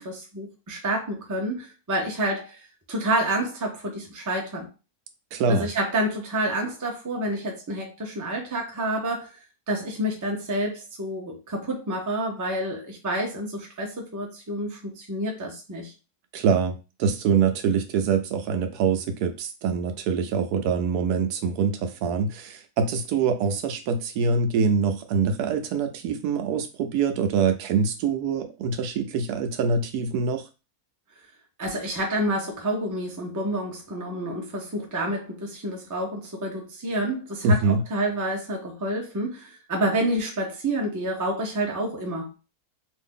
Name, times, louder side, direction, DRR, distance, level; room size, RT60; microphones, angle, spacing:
voice 1, 0.0-2.6 2.9-4.7 5.5-9.3 9.7-15.9 31.6-42.3, right 1 dB, 25° right, 1 dB, 0.4 m, -28 dB
voice 2, 5.3-5.7 16.3-30.4 37.4-37.8, right 5 dB, 80° right, 7 dB, 1.1 m, -24 dB
2.6 x 2.6 x 3.6 m, 0.29 s
omnidirectional pair, 1.7 m